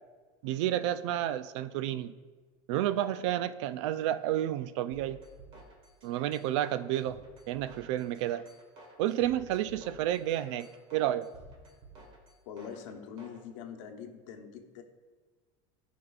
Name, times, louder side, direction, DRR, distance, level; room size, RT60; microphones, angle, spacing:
voice 1, 0.4-2.1 2.7-5.2 6.0-7.2 7.5-8.5 9.0-11.3, right 12 dB, 65° right, 14 dB, 0.4 m, -30 dB
sound 1, 4.9-13.4, right 2 dB, 35° right, 1.4 m, -53 dB
voice 2, 12.5-14.8, left 7 dB, 75° left, 5 dB, 0.9 m, -44 dB
13.0 x 5.1 x 2.4 m, 1.4 s
cardioid pair, 175°, 16 cm